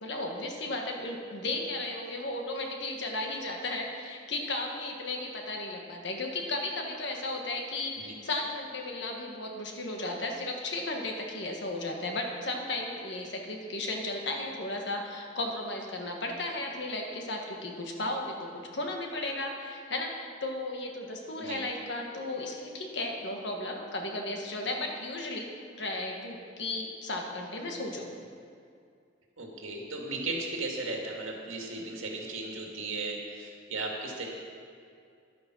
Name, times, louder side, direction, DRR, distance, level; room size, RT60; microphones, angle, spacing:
voice 1, 0.0-25.5 25.8-28.1, left 2 dB, 60° left, 1 dB, 1.5 m, -35 dB
voice 2, 29.4-34.3, right 3 dB, 80° right, 0 dB, 2.2 m, -36 dB
11.0 x 9.3 x 6.2 m, 2.3 s
head